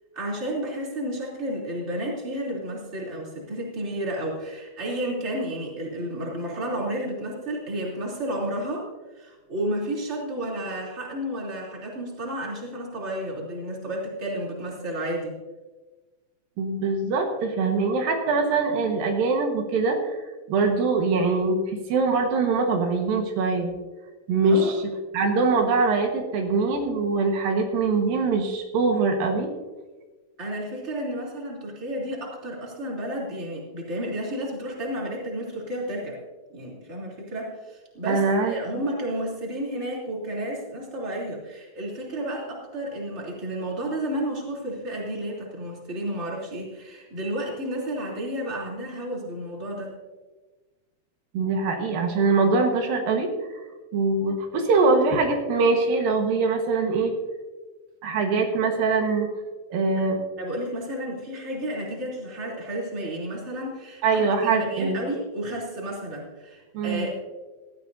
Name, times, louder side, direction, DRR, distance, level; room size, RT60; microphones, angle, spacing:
voice 1, 0.1-8.9 9.1-15.3 24.5-24.7 30.4-36.2 36.5-49.9 60.4-67.2, right 1 dB, 20° right, -3 dB, 3.1 m, -32 dB
voice 2, 16.6-23.7 24.3-24.8 25.1-29.5 38.1-38.6 51.3-53.3 53.9-57.1 58.0-59.3 59.7-60.2 64.0-65.0 66.7-67.1, right 4 dB, 80° right, 3 dB, 3.2 m, -23 dB
19.0 x 13.0 x 2.7 m, 1.2 s
omnidirectional pair, 4.0 m